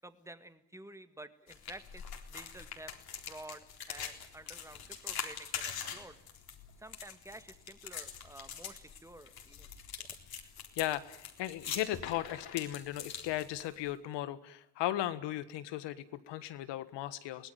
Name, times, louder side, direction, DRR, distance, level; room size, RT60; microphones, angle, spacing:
voice 1, 0.0-3.0 3.2-6.2 6.8-9.7 10.0-10.1, right 1 dB, 5° right, 11 dB, 2.1 m, -51 dB
sound 1, 1.5-13.9, left 7 dB, 60° left, 4.0 m, -44 dB
voice 2, 10.7-17.5, left 13 dB, 80° left, 14 dB, 1.7 m, -36 dB
24.0 x 18.0 x 9.4 m, 0.77 s
cardioid pair, 85°, 42 cm